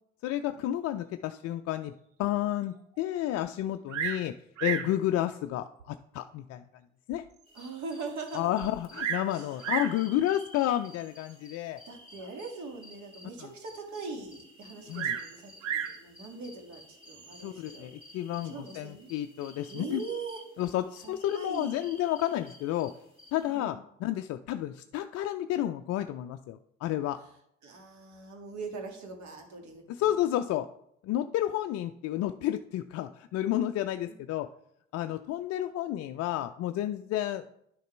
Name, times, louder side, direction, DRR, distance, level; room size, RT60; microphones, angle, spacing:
voice 1, 0.2-1.9 2.2-4.3 4.6-6.6 7.1-7.2 8.3-11.8 12.2-12.3 13.4-13.5 14.9-15.2 17.4-20.0 20.6-22.9 23.3-27.2 29.9-30.7 31.0-34.5 34.9-37.4, left 13 dB, 45° left, 8 dB, 0.5 m, -31 dB
Bird vocalization bird call bird song, 3.9-4.3 4.6-5.0 5.8-5.9 6.5-6.6 7.1-7.2 7.4-7.5 8.6-9.3 9.6-10.0 11.0-11.3 14.9-16.0 17.1-17.5, right 8 dB, 85° right, 0.9 m, -33 dB
sound 1, 7.5-23.6, left 1 dB, 15° right, 2.9 m, -53 dB
voice 2, 7.5-8.5 9.3-9.6 11.9-17.9 18.4-19.1 19.7-20.4 21.0-21.8 23.5-23.8 27.6-30.1 34.1-34.2, right 4 dB, 50° right, 3 dB, 2.2 m, -41 dB
10.5 x 6.5 x 3.3 m, 0.75 s
hypercardioid pair, 60°, 37 cm